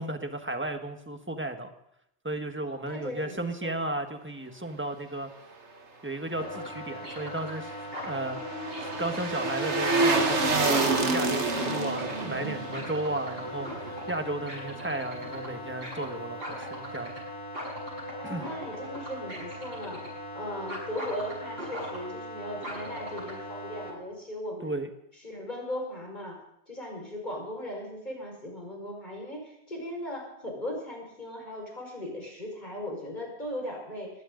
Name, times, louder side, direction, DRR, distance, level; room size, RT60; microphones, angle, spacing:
voice 1, 0.0-1.7 2.2-5.3 6.0-7.7 8.1-8.4 9.0-17.2 18.2-18.4 24.6-24.9, right 2 dB, 10° right, 6 dB, 1.5 m, -34 dB
voice 2, 2.6-3.8 18.2-20.0 20.3-24.8 25.2-26.4 26.7-34.1, left 1 dB, 40° left, 0 dB, 5.5 m, -38 dB
sound 1, 6.3-23.9, equal, 60° right, 7.3 m, -39 dB
sound 2, 7.2-14.4 14.7-14.8, right 3 dB, 85° right, 2.0 m, -28 dB
20.5 x 16.5 x 3.9 m, 0.79 s
omnidirectional pair, 1.1 m